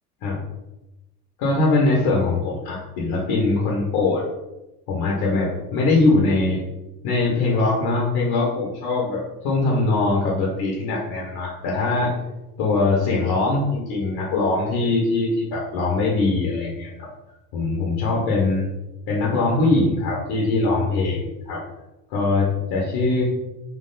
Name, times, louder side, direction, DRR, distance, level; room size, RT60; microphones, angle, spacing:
voice 1, 1.4-4.2 4.9-6.6 7.0-12.2 12.6-17.1 17.5-18.6 19.1-21.6 22.1-23.2, left 3 dB, 50° left, -3 dB, 1.4 m, -22 dB
4.6 x 2.6 x 4.0 m, 0.99 s
figure-of-eight pair, 65°, 48 cm